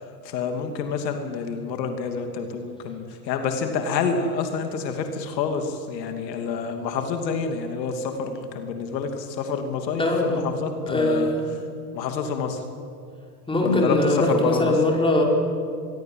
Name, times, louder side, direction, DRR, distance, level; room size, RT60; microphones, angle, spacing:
voice 1, 0.2-11.6 11.9-12.6 13.6-14.8, left 5 dB, 80° left, 6 dB, 2.8 m, -28 dB
voice 2, 10.0-10.5 10.9-11.5 13.5-15.2, left 1 dB, 10° left, 0 dB, 5.3 m, -21 dB
26.5 x 21.5 x 7.9 m, 2.4 s
supercardioid pair, 120°, 50 cm